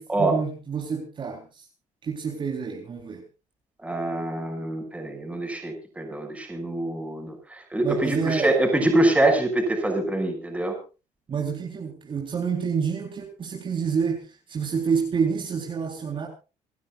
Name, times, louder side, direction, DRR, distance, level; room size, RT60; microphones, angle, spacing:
voice 1, 0.0-1.7 2.0-3.2 7.8-8.5 11.3-16.3, right 6 dB, 40° right, 1 dB, 4.0 m, -28 dB
voice 2, 3.8-10.8, right 1 dB, 10° right, 3 dB, 6.4 m, -25 dB
28.0 x 12.5 x 2.5 m, 0.32 s
cardioid pair, 130°, 13 cm